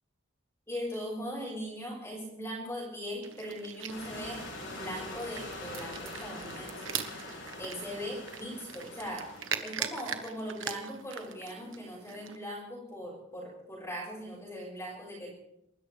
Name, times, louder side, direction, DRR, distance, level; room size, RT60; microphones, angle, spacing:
voice 1, 0.7-4.4 4.7-6.8 7.6-9.2 9.6-15.3, equal, 15° left, -4 dB, 6.0 m, -39 dB
sound 1, 3.2-12.4, right 8 dB, 80° right, 1.3 m, -41 dB
sound 2, 3.9-10.0, left 2 dB, 75° left, 7.1 m, -44 dB
28.5 x 13.5 x 3.4 m, 0.79 s
head